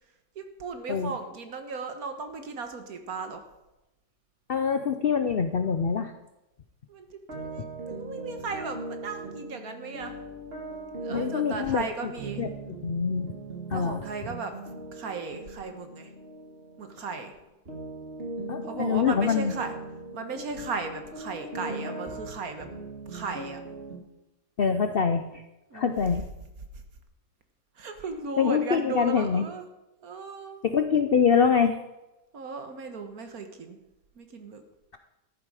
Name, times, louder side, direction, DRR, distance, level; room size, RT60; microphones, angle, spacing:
voice 1, 0.3-3.4 6.9-10.1 11.0-12.4 13.7-14.5 14.9-16.1 16.8-17.3 18.7-19.7 20.1-22.7 23.1-23.6 25.7-26.1 26.7-26.8 27.7-29.7 30.0-30.6 32.3-33.8 34.2-34.6, right 4 dB, 60° right, 7 dB, 1.7 m, -36 dB
voice 2, 4.5-6.1 11.1-12.1 12.4-13.3 13.7-14.0 18.5-19.5 24.6-25.4 25.7-26.2 28.4-29.5 30.6-31.8, left 6 dB, 60° left, 8 dB, 0.5 m, -25 dB
sound 1, 7.3-17.4 17.7-24.0, right 2 dB, 35° right, 2.2 m, -39 dB
13.5 x 11.0 x 4.9 m, 0.97 s
omnidirectional pair, 1.8 m